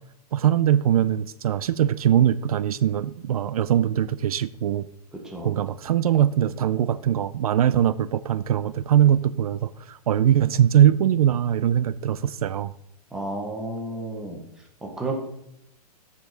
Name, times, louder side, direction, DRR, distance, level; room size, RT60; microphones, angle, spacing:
voice 1, 0.3-4.9 5.4-12.7, right 10 dB, 65° right, 16 dB, 0.4 m, -21 dB
voice 2, 5.1-5.6 13.1-14.4 14.8-15.1, right 2 dB, 5° right, 0 dB, 0.8 m, -32 dB
13.5 x 5.1 x 3.9 m, 0.79 s
hypercardioid pair, 175°, 20 cm